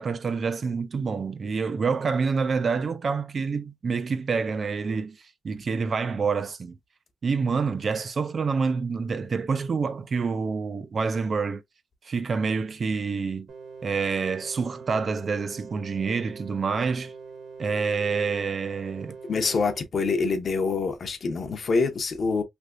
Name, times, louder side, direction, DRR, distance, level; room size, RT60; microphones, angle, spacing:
voice 1, 0.0-5.2 5.4-6.8 7.2-11.6 12.0-13.5 13.8-17.1 17.6-19.2, right 5 dB, 40° right, 0.3 m, -27 dB
sound 1, 13.5-19.8, right 5 dB, 65° right, 1.3 m, -43 dB
voice 2, 19.3-22.4, left 4 dB, 45° left, 0.7 m, -25 dB
3.4 x 2.7 x 2.4 m
cardioid pair, 135°, 0 cm